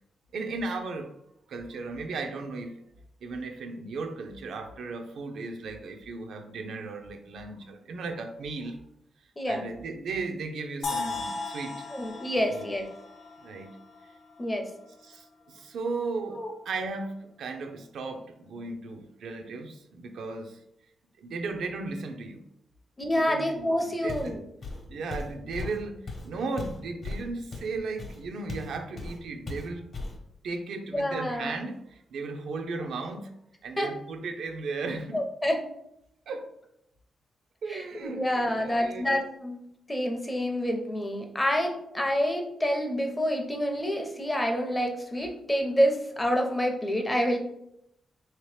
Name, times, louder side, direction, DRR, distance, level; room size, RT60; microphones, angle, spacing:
voice 1, 0.3-1.1 1.5-2.8 3.2-8.8 9.5-11.9 12.3-12.7 13.4-13.8 15.0-20.6 21.2-22.5 23.1-24.4 24.9-29.9 30.4-33.3 33.6-35.2 36.3-36.6 37.6-39.2, right 3 dB, 80° right, 6 dB, 0.4 m, -36 dB
sound 1, 10.8-14.7, left 3 dB, 70° left, 0.8 m, -37 dB
voice 2, 11.9-12.9 14.4-14.7 16.4-16.5 23.0-24.4 30.9-31.6 33.8-33.9 35.1-35.6 37.7-39.6 39.9-47.4, equal, 10° left, 3 dB, 0.5 m, -28 dB
Walk footsteps, 24.1-24.4 24.6-28.7 29.0-29.2 29.5-30.2, left 2 dB, 40° left, 0.8 m, -37 dB
3.7 x 2.8 x 3.2 m, 0.78 s
wide cardioid pair, 170°, 0 cm